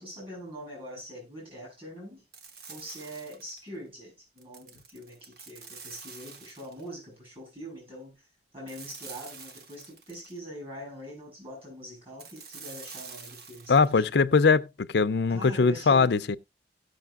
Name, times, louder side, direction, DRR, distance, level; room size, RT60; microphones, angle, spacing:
voice 1, 0.0-2.2 2.7-8.3 8.5-14.3 15.3-16.1, equal, 35° right, 7.6 m, -43 dB
sound 1, 2.3-3.7 4.4-6.9 8.7-10.4 12.2-13.9, right 5 dB, 60° right, 1.2 m, -46 dB
voice 2, 13.7-14.7 14.9-16.4, left 4 dB, 70° left, 0.5 m, -21 dB
17.5 x 6.4 x 2.4 m
head